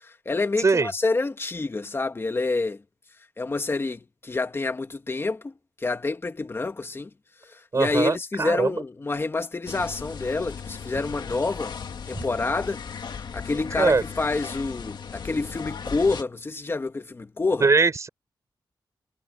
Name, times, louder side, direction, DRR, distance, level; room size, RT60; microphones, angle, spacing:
voice 1, 0.0-2.8 3.4-5.5 5.8-7.1 7.5-11.7 12.1-12.8 13.1-17.7, left 3 dB, 30° left, 2.0 m, -28 dB
voice 2, 0.6-0.9 7.7-8.8 12.1-12.2 13.8-14.0 17.6-18.1, right 4 dB, 40° right, 5.0 m, -21 dB
sound 1, 9.7-16.2, left 6 dB, 70° left, 2.0 m, -37 dB
wide cardioid pair, 115°, 8 cm